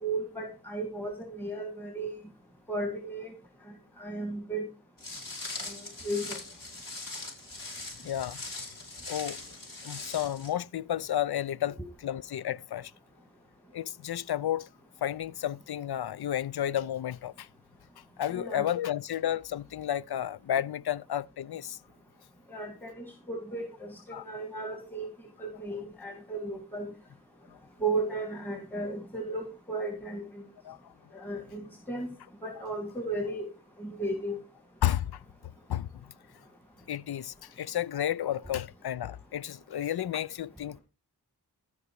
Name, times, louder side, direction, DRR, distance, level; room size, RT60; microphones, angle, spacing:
voice 1, 0.0-2.1 2.7-3.3 4.0-4.7 5.7-5.8 6.0-6.4 11.8-11.9 18.3-18.7 22.5-25.1 25.4-26.9 27.8-30.2 31.1-32.1 32.4-33.5 33.8-34.4, right 2 dB, 5° left, 2.3 m, -34 dB
Walk footsteps, 5.0-10.5, left 2 dB, 55° left, 5.7 m, -41 dB
voice 2, 8.0-8.4 9.1-9.4 9.8-12.9 13.7-14.7 15.0-17.5 18.2-21.8 24.1-24.2 30.6-30.8 34.8-35.2 35.7-35.9 36.9-40.8, left 11 dB, 75° left, 0.6 m, -32 dB
14.0 x 5.4 x 4.7 m
wide cardioid pair, 60°, 38 cm